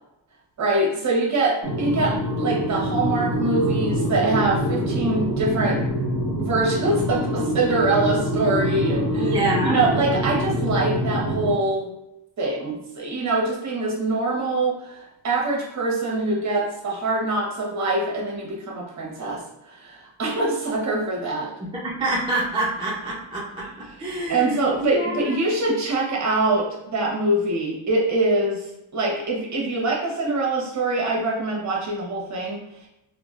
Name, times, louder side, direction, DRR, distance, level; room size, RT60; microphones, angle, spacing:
voice 1, 0.6-5.8 6.4-9.3 9.6-11.9 12.4-21.5 23.6-23.7 24.3-28.7 28.9-32.9, right 2 dB, 35° right, -2 dB, 1.0 m, -24 dB
sound 1, 1.6-11.5, equal, 30° left, 1.1 m, -25 dB
voice 2, 9.1-9.8 21.7-25.4, right 1 dB, 10° right, -6 dB, 0.5 m, -27 dB
3.7 x 2.2 x 2.5 m, 0.89 s
cardioid pair, 115°, 47 cm